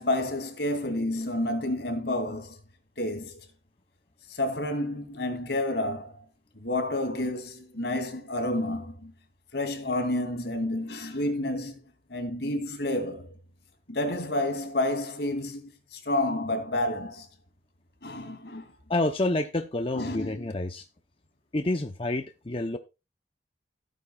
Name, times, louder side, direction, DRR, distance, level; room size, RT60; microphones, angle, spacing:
voice 1, 0.0-2.6 3.0-3.4 4.3-6.2 6.6-9.1 9.5-11.8 12.1-13.3 13.9-17.3 18.0-18.6 19.9-20.6, left 1 dB, 75° left, 2.7 m, -30 dB
voice 2, 18.9-20.8 21.5-22.8, left 2 dB, 30° left, 0.7 m, -28 dB
16.0 x 9.2 x 2.4 m
head